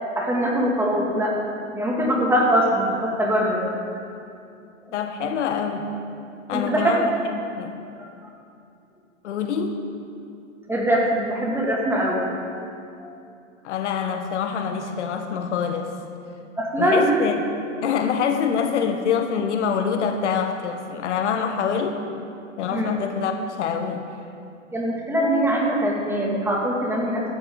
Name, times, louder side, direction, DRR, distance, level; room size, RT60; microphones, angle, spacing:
voice 1, 0.2-1.4 1.7-4.0 6.5-6.9 10.7-12.7 13.0-13.1 16.6-17.2 22.7-23.0 24.7-27.2, equal, 5° right, -3 dB, 2.5 m, -22 dB
voice 2, 4.9-5.9 6.5-7.8 9.2-9.8 13.6-15.9 16.8-17.3 17.8-22.0 22.6-24.0, left 6 dB, 60° left, 5 dB, 1.4 m, -25 dB
16.5 x 12.5 x 4.0 m, 2.5 s
hypercardioid pair, 120°, 39 cm